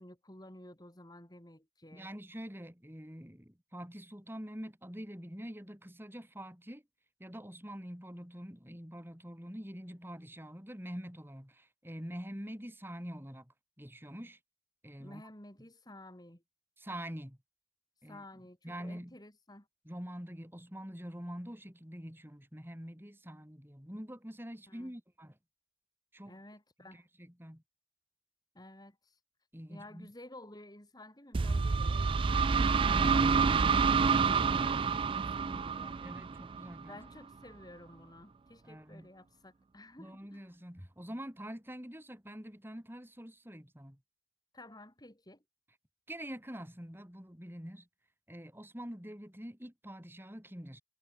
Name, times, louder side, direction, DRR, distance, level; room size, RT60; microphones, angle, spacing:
voice 1, 0.0-2.1 15.0-16.4 18.1-19.7 24.7-24.9 26.3-27.0 28.5-29.2 29.7-36.0 36.9-40.5 44.5-45.4, left 1 dB, 20° left, 4.4 m, -53 dB
voice 2, 1.9-6.8 7.2-14.4 14.8-15.2 16.8-17.4 18.0-18.2 18.6-19.2 19.8-25.3 26.1-26.3 26.8-27.6 29.5-30.1 36.0-37.0 38.6-39.1 40.0-44.0 46.1-47.9 48.3-50.8, equal, 10° right, 4.8 m, -45 dB
sound 1, 31.3-37.0, right 5 dB, 30° right, 0.3 m, -28 dB
head